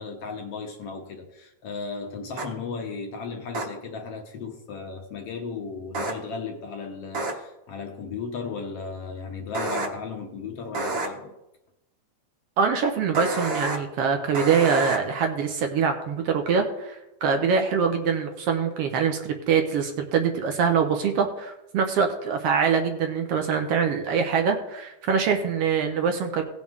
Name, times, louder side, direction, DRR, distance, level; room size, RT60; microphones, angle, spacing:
voice 1, 0.0-11.3, left 5 dB, 65° left, 1.7 m, -35 dB
sound 1, 2.4-2.5 3.5-3.6 5.9-6.1 7.1-7.3 9.5-9.9 10.7-11.1 13.1-13.8 14.3-15.0, right 2 dB, 50° right, 1.6 m, -28 dB
voice 2, 12.6-17.0 17.2-26.4, right 6 dB, 70° right, 1.5 m, -24 dB
17.5 x 6.3 x 3.6 m
omnidirectional pair, 3.6 m